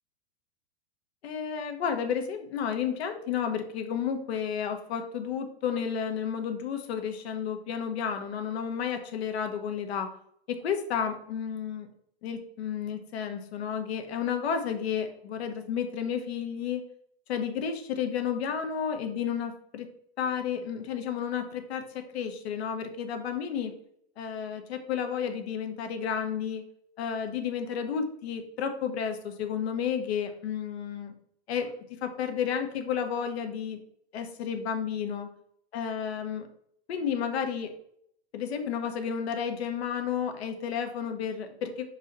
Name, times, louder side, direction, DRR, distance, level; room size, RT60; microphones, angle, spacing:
voice 1, 1.2-10.1 10.5-11.9 12.2-16.8 17.3-19.9 20.2-23.7 24.2-26.6 27.0-31.1 31.5-31.7 32.0-33.8 34.1-35.3 35.7-36.4 36.9-37.7 38.3-41.8, left 7 dB, 70° left, 6 dB, 1.3 m, -32 dB
5.7 x 4.7 x 4.2 m, 0.70 s
supercardioid pair, 150°, 32 cm